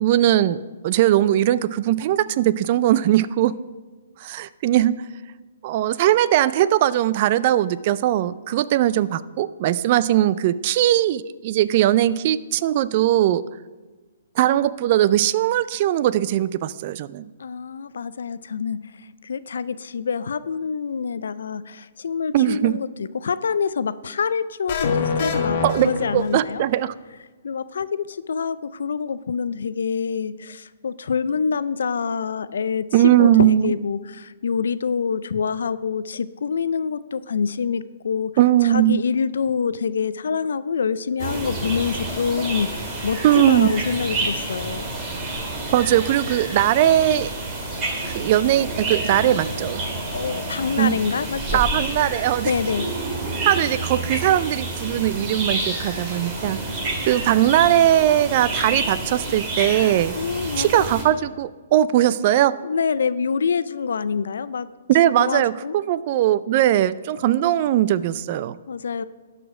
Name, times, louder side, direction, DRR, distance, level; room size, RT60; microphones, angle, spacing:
voice 1, 0.0-3.5 4.2-4.9 5.6-13.4 14.4-17.3 22.3-22.8 25.6-26.9 32.9-33.7 38.4-39.0 43.2-43.7 45.7-47.3 48.1-49.8 50.8-50.9 51.5-52.5 53.5-56.6 57.0-60.1 60.6-62.6 64.9-68.6, right 12 dB, 40° right, 17 dB, 0.3 m, -19 dB
voice 2, 17.4-26.6 27.4-38.3 38.6-44.9 50.1-51.6 52.5-52.9 60.2-60.7 61.1-61.2 62.6-64.7 65.3-65.8 68.7-69.0, left 6 dB, 75° left, 15 dB, 0.4 m, -26 dB
sound 1, 24.7-26.7, left 4 dB, 45° left, 1.1 m, -25 dB
sound 2, 41.2-61.0, right 2 dB, 25° right, 2.1 m, -29 dB
12.0 x 5.0 x 4.9 m, 1.3 s
hypercardioid pair, 150°, 0 cm